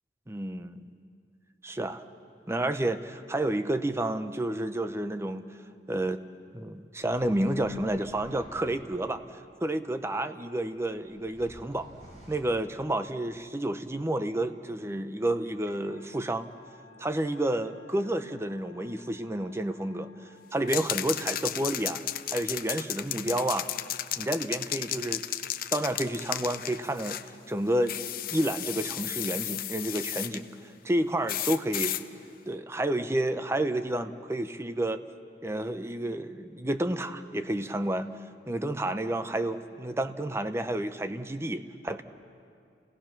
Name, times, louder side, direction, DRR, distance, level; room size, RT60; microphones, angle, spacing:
voice 1, 0.3-0.9 1.6-2.0 2.5-5.5 5.9-6.2 6.5-9.2 9.6-11.9 12.3-16.5 17.0-22.0 22.3-23.7 24.2-25.2 25.7-27.2 27.5-28.0 28.3-30.5 30.8-31.9 32.5-35.0 35.4-38.1 38.5-42.0, right 1 dB, 15° right, 10 dB, 0.6 m, -30 dB
sound 1, 7.0-9.1 10.6-12.4, equal, 40° right, 5.9 m, -51 dB
Musical instrument, 15.7-23.3, left 5 dB, 85° right, 3.0 m, -58 dB
sound 2, 20.7-27.3 27.9-30.4 31.3-32.0, left 12 dB, 55° left, 0.6 m, -34 dB
29.0 x 18.0 x 5.9 m, 2.3 s
head